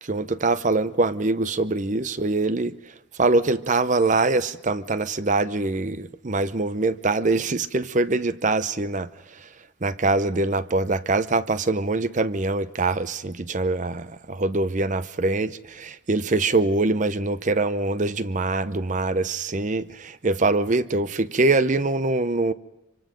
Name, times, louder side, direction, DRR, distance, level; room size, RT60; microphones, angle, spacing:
voice 1, 0.0-9.5 9.8-22.5, right 3 dB, 40° right, 0.7 m, -24 dB
26.0 x 24.5 x 5.2 m
head